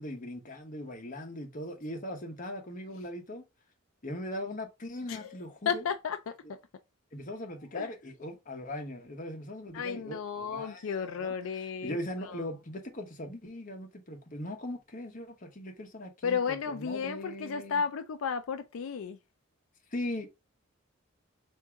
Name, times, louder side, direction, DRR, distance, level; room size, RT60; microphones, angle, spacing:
voice 1, 0.0-3.4 4.0-5.9 7.1-11.3 11.8-17.8 19.9-20.3, left 1 dB, 40° left, 1.0 m, -39 dB
voice 2, 5.1-6.3 7.7-7.9 9.7-12.0 12.3-12.5 16.2-19.2, left 6 dB, 75° left, 0.4 m, -33 dB
3.6 x 2.7 x 4.5 m
head